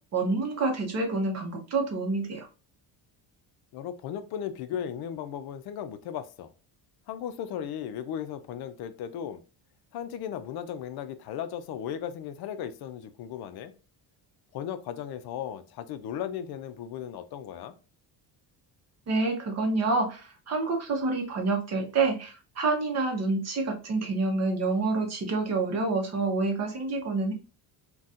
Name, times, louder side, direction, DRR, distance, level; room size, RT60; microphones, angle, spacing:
voice 1, 0.1-2.5 19.1-27.3, right 3 dB, 35° right, 0.7 m, -28 dB
voice 2, 3.7-6.5 7.1-9.4 9.9-13.7 14.5-17.8, left 9 dB, 60° left, 0.5 m, -36 dB
4.0 x 2.3 x 2.4 m
cardioid pair, 150°, 44 cm